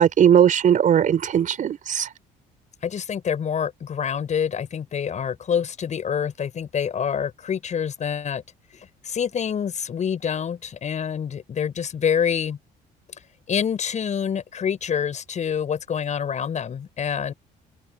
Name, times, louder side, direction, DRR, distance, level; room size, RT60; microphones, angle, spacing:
voice 1, 0.0-2.1, right 9 dB, 50° right, 5.2 m, -18 dB
voice 2, 2.8-8.4 8.7-12.6 13.5-17.3, left 7 dB, 45° left, 7.5 m, -26 dB
open air
cardioid pair, 110°, 17 cm